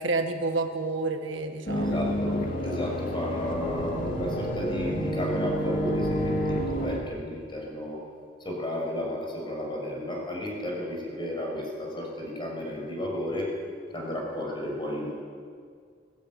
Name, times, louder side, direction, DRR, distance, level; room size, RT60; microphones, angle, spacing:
voice 1, 0.0-2.1, right 3 dB, 70° right, 5 dB, 1.7 m, -29 dB
sound 1, 1.7-7.0, equal, 45° left, 2.7 m, -29 dB
voice 2, 1.7-8.0 8.4-13.5 13.9-15.2, left 1 dB, 25° left, -1 dB, 5.9 m, -33 dB
20.5 x 16.0 x 9.3 m, 2.1 s
head